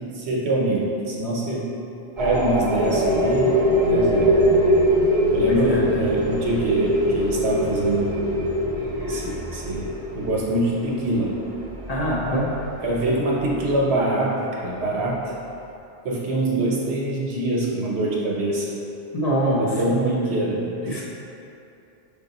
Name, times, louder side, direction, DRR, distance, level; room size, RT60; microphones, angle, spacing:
voice 1, 0.0-1.7 2.2-3.5 3.8-4.4 5.3-8.1 8.7-11.3 12.8-15.2 16.0-18.7 19.6-21.0, right 1 dB, 65° right, -3 dB, 1.0 m, -24 dB
sound 1, 2.2-13.8, equal, 35° right, 0.5 m, -23 dB
voice 2, 5.5-5.8 11.9-12.5 19.1-19.7 20.9-21.0, equal, 40° left, -6 dB, 0.6 m, -23 dB
5.7 x 2.3 x 4.0 m, 2.8 s
omnidirectional pair, 1.2 m